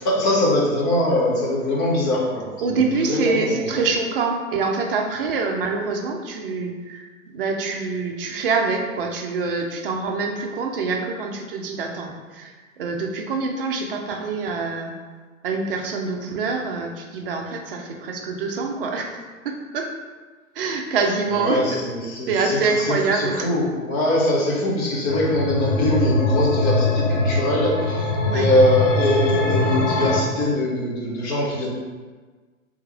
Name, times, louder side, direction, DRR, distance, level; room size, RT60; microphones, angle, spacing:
voice 1, 0.0-3.8 21.3-31.7, left 1 dB, 30° left, -4 dB, 1.1 m, -22 dB
voice 2, 2.6-7.0 7.3-14.9 15.4-19.2 19.4-19.9 20.6-21.8 22.3-23.5 28.2-28.5, right 4 dB, 45° right, 2 dB, 0.6 m, -25 dB
sound 1, 25.1-30.2, left 1 dB, 65° left, 0.7 m, -22 dB
3.5 x 3.2 x 3.4 m, 1.4 s
figure-of-eight pair, 110°, 41 cm